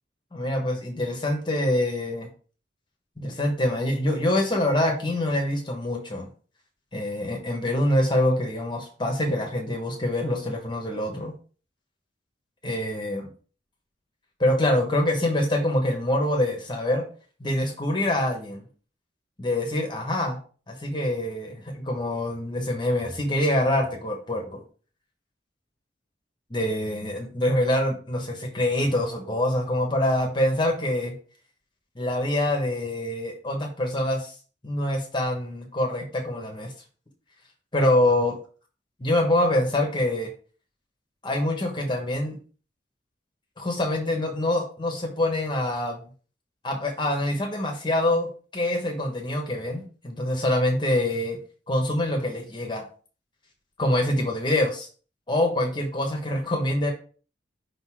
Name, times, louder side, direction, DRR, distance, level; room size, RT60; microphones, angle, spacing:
voice 1, 0.3-2.3 3.2-6.3 6.9-11.3 12.6-13.3 14.4-17.0 17.4-18.6 19.4-20.4 20.7-24.6 26.5-31.1 31.9-34.3 34.6-36.7 37.7-38.4 39.0-40.3 41.2-42.4 43.6-46.1 46.6-51.4 51.7-52.8 53.8-54.9 55.3-56.9, left 1 dB, 25° left, 2 dB, 1.2 m, -25 dB
5.3 x 3.9 x 4.8 m, 0.40 s
head